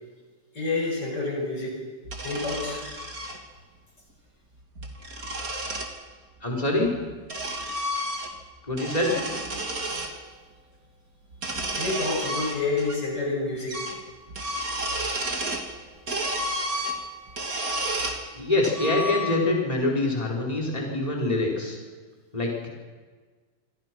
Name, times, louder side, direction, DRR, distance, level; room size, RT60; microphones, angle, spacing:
voice 1, 0.5-1.8 2.2-2.8 10.1-10.2 11.7-13.8, left 3 dB, 75° left, -1 dB, 7.7 m, -28 dB
sound 1, 2.1-3.4 4.6-5.9 6.8-8.5 8.7-10.1 11.3-13.0 13.2-13.3 13.7-14.0 14.3-15.7 16.1-18.2 18.6-19.6, right 1 dB, 55° right, 3.4 m, -31 dB
voice 2, 6.4-6.9 8.7-9.1 18.3-21.8 22.3-22.7, left 2 dB, 20° left, -2 dB, 4.6 m, -25 dB
27.5 x 25.5 x 6.2 m, 1.4 s
omnidirectional pair, 1.8 m